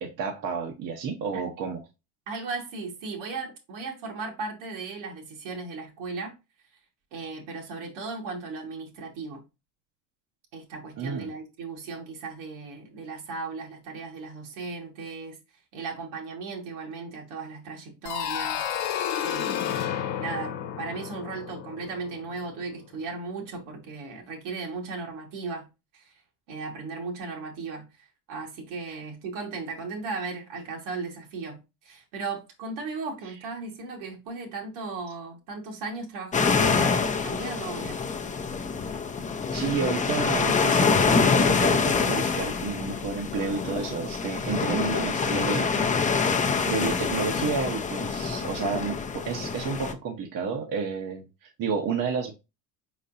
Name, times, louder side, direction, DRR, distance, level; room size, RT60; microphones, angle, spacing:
voice 1, 0.0-1.8 11.0-11.3 28.9-29.0 39.5-45.7 46.2-52.3, right 5 dB, 45° right, 1.0 m, -31 dB
voice 2, 2.3-6.4 7.1-9.4 10.5-15.4 15.7-18.9 19.2-19.8 20.2-25.7 25.9-26.1 26.5-27.9 28.3-38.0, right 4 dB, 70° right, 2.0 m, -36 dB
sound 1, 18.1-22.7, left 9 dB, 70° left, 0.9 m, -31 dB
sound 2, 36.3-49.9, left 5 dB, 15° left, 0.6 m, -26 dB
4.5 x 4.2 x 2.7 m
hypercardioid pair, 80°, 47 cm